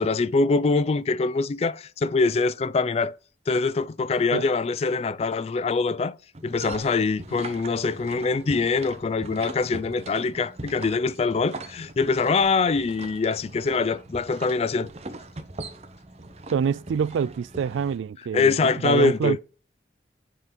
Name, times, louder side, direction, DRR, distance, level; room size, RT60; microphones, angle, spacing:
voice 1, 0.0-3.2 3.5-6.2 6.4-14.9 18.3-19.4, left 4 dB, 35° left, 0.3 m, -24 dB
sound 1, 6.3-18.0, right 2 dB, 35° right, 0.8 m, -41 dB
voice 2, 16.5-18.5 18.8-19.4, right 6 dB, 90° right, 0.3 m, -25 dB
8.2 x 3.7 x 5.1 m
head